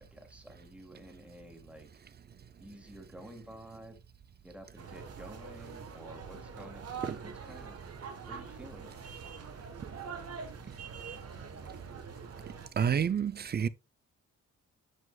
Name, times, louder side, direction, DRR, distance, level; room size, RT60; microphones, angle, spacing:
voice 1, 0.0-2.0 2.6-4.0 4.4-6.9 7.2-7.8 8.3-9.1, equal, 5° right, 1.7 m, -51 dB
sound 1, 4.8-12.7, right 6 dB, 50° right, 1.2 m, -44 dB
voice 2, 12.8-13.7, right 7 dB, 30° right, 0.4 m, -29 dB
9.7 x 4.9 x 2.3 m
wide cardioid pair, 140°, 32 cm